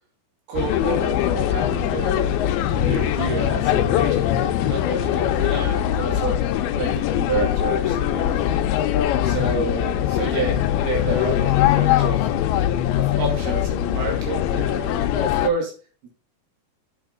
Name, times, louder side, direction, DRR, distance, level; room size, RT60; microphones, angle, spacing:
voice 1, 0.5-6.4 6.7-8.7 9.2-12.2 13.0-15.7 16.0-16.1, right 3 dB, 80° right, 0 dB, 4.5 m, -29 dB
sound 1, 0.6-15.5, left 11 dB, 80° left, 2.6 m, -22 dB
8.6 x 7.1 x 3.7 m, 0.39 s
omnidirectional pair, 4.5 m